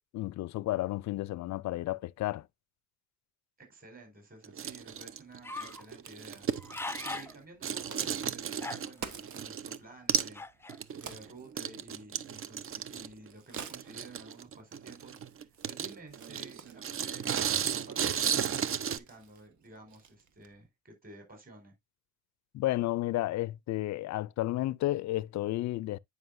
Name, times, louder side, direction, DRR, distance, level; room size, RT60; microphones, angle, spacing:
voice 1, 0.1-2.5 22.5-26.0, left 16 dB, 65° left, 0.5 m, -32 dB
voice 2, 3.6-21.7, right 2 dB, 30° right, 4.6 m, -53 dB
sound 1, 4.4-7.4 7.6-9.8 10.1-10.4 10.7-19.0, right 8 dB, 45° right, 0.7 m, -34 dB
Crack, 4.6-20.7, right 6 dB, 70° right, 1.5 m, -52 dB
sound 2, 5.4-5.8 6.4-7.3 7.8-7.9 8.5-9.1 10.3-10.8, left 3 dB, 10° left, 0.5 m, -39 dB
9.6 x 5.3 x 2.5 m
cardioid pair, 90°, 30 cm